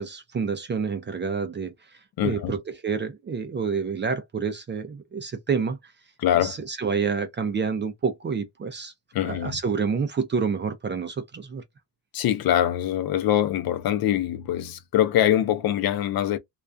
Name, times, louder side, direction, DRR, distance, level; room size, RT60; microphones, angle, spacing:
voice 1, 0.0-5.9 6.3-8.9 9.3-11.6, right 5 dB, 30° right, 0.4 m, -28 dB
voice 2, 2.2-2.5 6.2-6.6 9.1-9.6 12.1-16.4, left 11 dB, 60° left, 0.5 m, -23 dB
2.3 x 2.2 x 2.4 m
cardioid pair, 170°, 42 cm